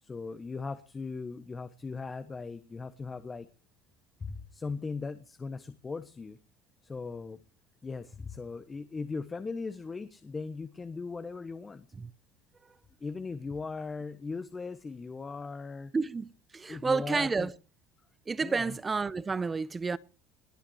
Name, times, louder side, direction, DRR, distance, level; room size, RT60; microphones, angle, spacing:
voice 1, 0.0-3.5 4.2-6.4 6.8-7.4 7.8-11.9 13.0-15.9 16.7-17.5 18.4-18.8, left 4 dB, 25° left, 1.3 m, -38 dB
voice 2, 15.9-17.5 18.3-20.0, right 4 dB, 25° right, 0.8 m, -30 dB
20.0 x 8.7 x 6.5 m
supercardioid pair, 90°, 0 cm